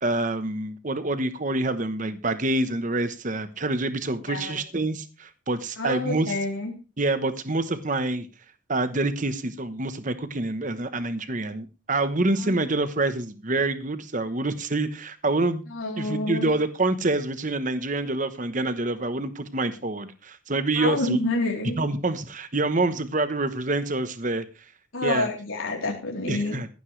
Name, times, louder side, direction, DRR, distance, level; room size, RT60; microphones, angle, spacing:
voice 1, 0.0-6.4 7.0-8.3 8.7-15.6 16.0-21.2 21.8-24.4 25.0-25.3 26.3-26.7, right 2 dB, 40° right, 11 dB, 1.0 m, -26 dB
voice 2, 4.3-4.6 5.8-6.7 12.4-12.6 15.7-16.5 20.8-21.8 24.9-26.6, left 2 dB, 80° left, 0 dB, 3.5 m, -28 dB
15.0 x 12.0 x 3.3 m, 0.31 s
head